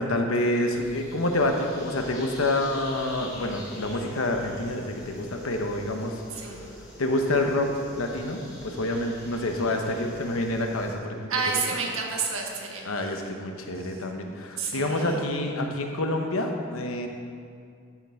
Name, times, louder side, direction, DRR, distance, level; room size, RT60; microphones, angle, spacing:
voice 1, 0.0-6.2 7.0-11.6 12.8-17.1, left 1 dB, 75° left, 3 dB, 1.0 m, -27 dB
sound 1, 0.6-11.0, left 1 dB, 55° left, 2.6 m, -44 dB
voice 2, 11.3-12.9 14.6-15.2, right 4 dB, 70° right, 0 dB, 1.5 m, -29 dB
12.0 x 5.9 x 4.4 m, 2.2 s
head